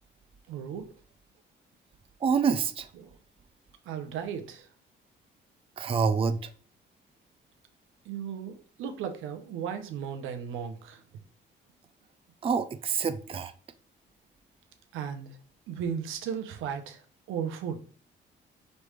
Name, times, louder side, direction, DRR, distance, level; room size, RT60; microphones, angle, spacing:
voice 1, 0.5-0.9 3.0-3.2 3.8-4.7 8.0-11.0 14.9-15.4 15.7-17.8, right 8 dB, 90° right, 0.7 m, -36 dB
voice 2, 2.2-2.9 5.8-6.5 12.4-13.5, right 6 dB, 30° right, 0.4 m, -27 dB
5.3 x 3.3 x 3.1 m
cardioid pair, 90°, 20 cm